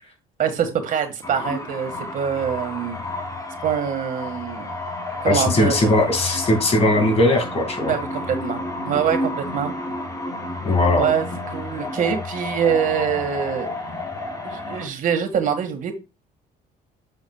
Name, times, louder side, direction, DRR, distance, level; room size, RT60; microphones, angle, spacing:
voice 1, 0.4-3.0 3.6-4.7 5.2-5.9 7.9-9.7 11.0-13.7 14.4-15.9, right 8 dB, 50° right, 1.8 m, -24 dB
sound 1, 1.2-14.9, left 2 dB, 20° left, 2.5 m, -31 dB
voice 2, 5.3-7.9 10.6-11.1, left 1 dB, 35° left, 2.2 m, -19 dB
7.4 x 7.0 x 2.3 m
cardioid pair, 110°, 17 cm